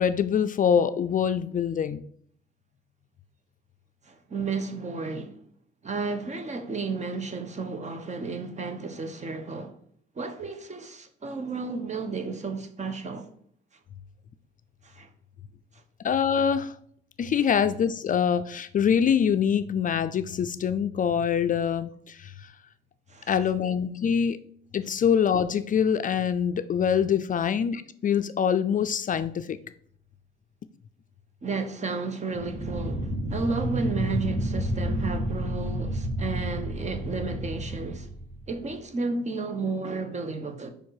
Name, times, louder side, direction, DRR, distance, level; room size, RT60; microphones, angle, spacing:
voice 1, 0.0-2.0 16.0-16.8 17.2-22.5 23.3-24.4 24.7-29.6, left 7 dB, 40° left, 0.4 m, -24 dB
voice 2, 4.0-5.4 5.8-9.7 10.2-13.3 14.8-15.1 23.1-23.3 31.4-38.1 38.5-40.7, right 4 dB, 35° right, 1.0 m, -32 dB
sound 1, 32.3-38.8, right 1 dB, 75° right, 2.1 m, -30 dB
5.1 x 4.4 x 4.7 m
cardioid pair, 90°, 20 cm